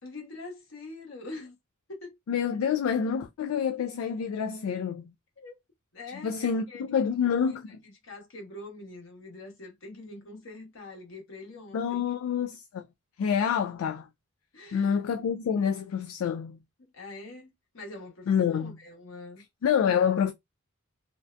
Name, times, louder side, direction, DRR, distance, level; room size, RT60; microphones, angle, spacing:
voice 1, 0.0-1.5 1.9-2.2 5.4-5.6 5.9-7.6 7.8-12.0 14.5-15.0 16.8-19.4, left 2 dB, 70° left, 1.1 m, -44 dB
voice 2, 2.3-5.1 6.2-7.8 11.7-12.9 13.2-14.1 14.7-16.6 18.3-18.8 19.6-20.3, left 7 dB, 85° left, 0.3 m, -27 dB
2.6 x 2.1 x 2.4 m
head